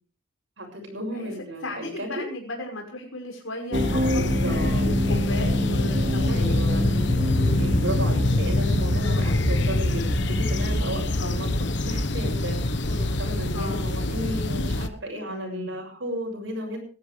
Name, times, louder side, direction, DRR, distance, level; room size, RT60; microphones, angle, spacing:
voice 1, 0.6-2.3 4.1-4.9 6.3-7.0 7.6-11.5 11.8-12.6 12.9-16.8, equal, 70° right, -1 dB, 6.9 m, -34 dB
voice 2, 1.6-6.8 7.3-7.8 9.0-9.3 11.1-11.4 13.5-13.9 15.2-15.7, left 1 dB, 90° left, 0 dB, 5.7 m, -36 dB
sound 1, 3.7-14.9, left 2 dB, 60° left, 1.2 m, -26 dB
sound 2, 3.7-11.0, left 1 dB, 35° right, 3.0 m, -26 dB
20.0 x 14.5 x 3.4 m, 0.39 s
head